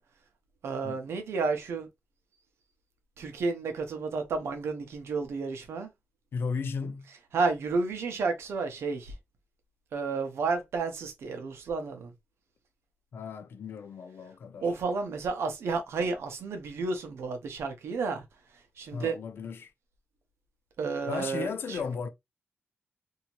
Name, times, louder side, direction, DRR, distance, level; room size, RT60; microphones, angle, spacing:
voice 1, 0.6-1.9 3.2-5.9 7.3-9.1 9.9-12.1 14.6-18.2 18.8-19.2 20.8-21.8, right 4 dB, 90° right, 0.8 m, -31 dB
voice 2, 6.3-7.1 13.1-14.7 18.9-19.7 21.1-22.1, left 5 dB, 60° left, 0.4 m, -35 dB
2.8 x 2.7 x 2.8 m
wide cardioid pair, 140°, 4 cm